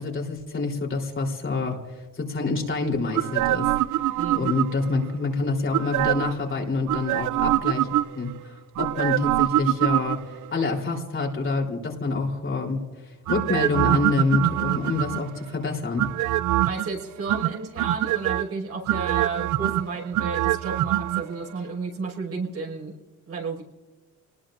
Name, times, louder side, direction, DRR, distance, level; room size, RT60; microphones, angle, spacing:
voice 1, 0.0-1.8 2.1-3.7 4.3-7.9 8.2-10.2 10.5-16.1, left 3 dB, 40° left, 0 dB, 3.6 m, -27 dB
sound 1, 3.1-5.0 5.7-6.4 6.9-8.3 8.8-10.5 13.3-15.4 16.0-16.9 17.3-18.4 18.9-21.2 21.5-21.6, right 15 dB, 80° right, 0.5 m, -24 dB
voice 2, 4.2-4.5 16.6-22.9 23.3-23.6, right 4 dB, 50° right, -1 dB, 5.6 m, -32 dB
26.5 x 20.0 x 2.6 m, 1.3 s
cardioid pair, 90°, 30 cm